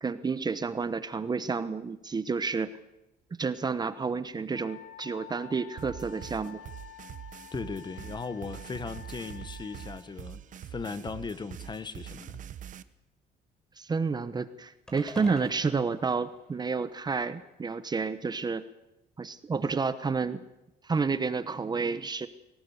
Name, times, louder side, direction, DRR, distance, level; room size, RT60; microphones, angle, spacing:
voice 1, 0.0-2.7 3.4-6.6 13.8-18.6 19.2-20.4 20.8-22.3, right 4 dB, 25° right, 13 dB, 1.0 m, -30 dB
Wind instrument woodwind instrument, 4.5-10.1, left 10 dB, 80° left, 2.7 m, -49 dB
sound 1, 5.8-12.8, right 10 dB, 50° right, 1.0 m, -44 dB
voice 2, 7.5-12.4, left 4 dB, 25° left, 14 dB, 1.3 m, -38 dB
sound 2, 14.9-17.2, equal, 5° left, 6.0 m, -48 dB
21.0 x 18.0 x 8.3 m, 0.93 s
cardioid pair, 115°, 17 cm